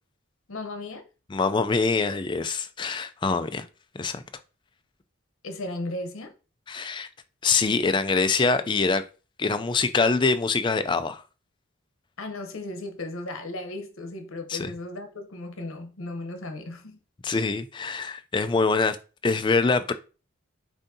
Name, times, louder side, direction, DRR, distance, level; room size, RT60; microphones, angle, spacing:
voice 1, 0.5-1.0 5.4-6.3 12.2-17.0, left 2 dB, 75° left, 0.8 m, -35 dB
voice 2, 1.3-3.6 3.9-4.2 6.7-7.1 7.4-9.0 9.4-11.2 14.5-14.7 17.2-19.0 19.2-19.9, left 4 dB, 20° left, 0.3 m, -24 dB
7.1 x 2.6 x 2.7 m
head